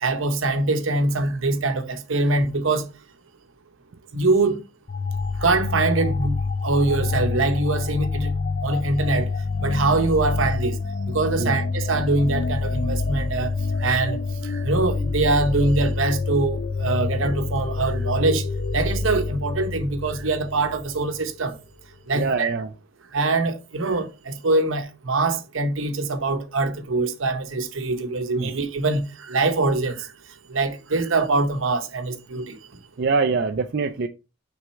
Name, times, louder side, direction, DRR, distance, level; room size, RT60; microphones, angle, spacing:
voice 1, 0.0-2.9 4.1-4.6 5.4-6.4 6.6-8.3 8.6-9.3 9.6-10.8 11.1-13.5 13.8-18.5 18.7-21.6 22.1-22.5 23.1-30.1 30.5-32.6, right 3 dB, 75° right, 0.9 m, -23 dB
sound 1, 4.9-21.2, left 4 dB, 40° left, 0.5 m, -27 dB
voice 2, 22.1-22.7 28.3-28.5 33.0-34.1, right 4 dB, 50° right, 0.4 m, -24 dB
6.0 x 3.6 x 4.4 m
head